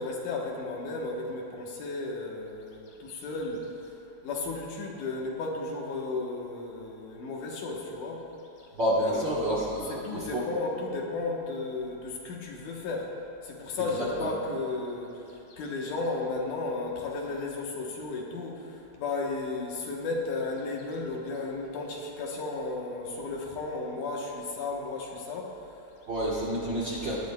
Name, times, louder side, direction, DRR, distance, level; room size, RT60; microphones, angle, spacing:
voice 1, 0.0-8.2 9.1-9.6 9.9-13.1 13.4-25.6, left 3 dB, 70° left, -1 dB, 2.6 m, -34 dB
voice 2, 8.8-10.4 14.0-14.3 26.1-27.2, equal, 50° right, -7 dB, 1.4 m, -29 dB
20.0 x 11.0 x 2.3 m, 3.0 s
omnidirectional pair, 3.7 m